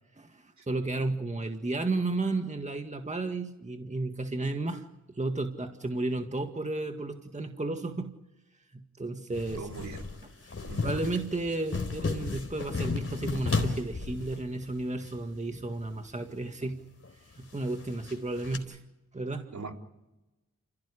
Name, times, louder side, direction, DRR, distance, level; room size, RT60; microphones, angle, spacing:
voice 1, 0.1-8.1 8.7-9.9 10.4-10.5 10.8-16.8 17.4-18.8 19.1-19.5, right 2 dB, 20° right, 5 dB, 1.9 m, -33 dB
sound 1, 9.3-15.1 15.5-15.9 16.2-16.3 17.0-18.6, left 4 dB, 45° left, 4.1 m, -34 dB
voice 2, 9.6-10.0 10.7-10.9 19.5-19.8, right 4 dB, 60° right, 3 dB, 3.6 m, -40 dB
28.0 x 16.5 x 10.0 m, 1.0 s
wide cardioid pair, 80°, 32 cm